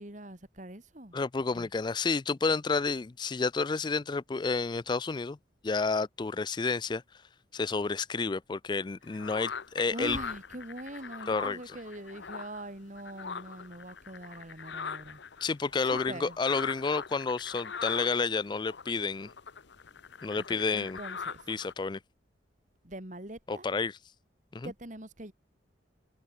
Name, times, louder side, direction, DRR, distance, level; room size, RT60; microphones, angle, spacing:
voice 1, 0.0-1.2 1.5-1.7 9.9-15.2 15.9-16.4 20.4-21.4 22.8-23.7 24.6-25.3, right 1 dB, 40° right, 2.7 m, -43 dB
voice 2, 1.1-5.4 5.6-7.0 7.5-10.2 11.3-11.6 15.4-19.3 20.2-21.0 21.5-22.0 23.5-24.0 24.5-24.7, left 4 dB, 25° left, 0.3 m, -30 dB
sound 1, 9.0-12.7 13.0-21.7, left 6 dB, 65° left, 0.8 m, -42 dB
head